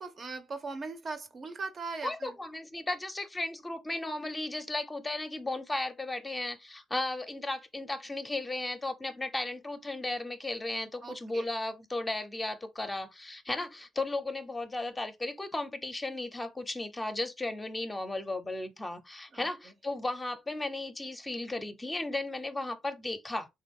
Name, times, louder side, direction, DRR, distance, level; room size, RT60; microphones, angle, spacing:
voice 1, 0.0-2.3 11.0-11.5 19.3-19.5, right 4 dB, 45° right, 0.6 m, -39 dB
voice 2, 2.0-23.5, left 2 dB, 20° left, 0.6 m, -35 dB
3.4 x 2.2 x 3.6 m
cardioid pair, 90°, 0 cm